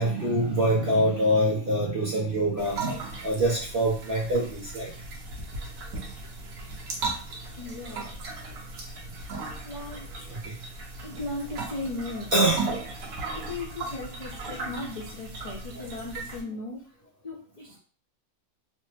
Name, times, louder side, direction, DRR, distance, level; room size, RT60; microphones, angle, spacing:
voice 1, 0.0-2.9 3.2-4.9 7.8-8.1 10.3-10.5 12.3-12.7, right 1 dB, 50° right, -3 dB, 0.7 m, -25 dB
sound 1, 2.6-16.4, right 3 dB, 70° right, 1.1 m, -37 dB
voice 2, 7.6-8.1 9.6-10.1 11.0-12.3 13.3-16.8 17.2-17.8, left 2 dB, 40° left, -6 dB, 0.5 m, -37 dB
3.2 x 2.0 x 3.1 m, 0.41 s
omnidirectional pair, 1.6 m